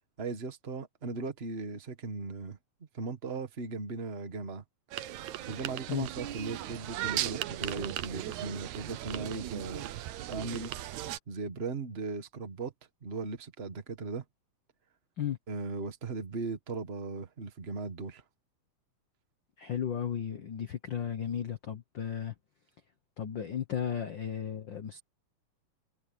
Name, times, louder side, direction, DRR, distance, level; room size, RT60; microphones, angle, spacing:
voice 1, 0.2-2.6 2.9-4.6 5.4-10.0 10.3-10.8 11.3-12.7 13.0-14.2 15.5-18.2, right 4 dB, 35° right, 0.9 m, -38 dB
sound 1, 4.9-11.2, right 13 dB, 70° right, 2.0 m, -37 dB
voice 2, 19.6-22.3 23.2-25.0, left 9 dB, 70° left, 1.1 m, -34 dB
omnidirectional pair, 3.8 m